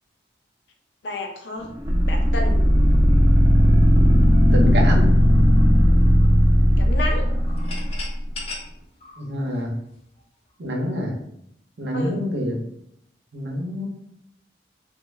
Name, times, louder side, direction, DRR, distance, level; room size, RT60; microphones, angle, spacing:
voice 1, 1.0-1.8 2.1-2.7 6.8-7.3 11.9-12.3, left 2 dB, 85° left, 3 dB, 0.6 m, -31 dB
sound 1, 1.8-8.0, equal, 25° right, 0.3 m, -16 dB
voice 2, 2.9-3.2 4.5-5.1 9.2-9.7 10.6-11.1 11.8-12.5 13.3-13.9, equal, 80° right, 0 dB, 0.7 m, -26 dB
sound 2, 7.5-10.2, left 3 dB, 35° left, 0.5 m, -37 dB
3.0 x 2.0 x 3.3 m, 0.75 s
head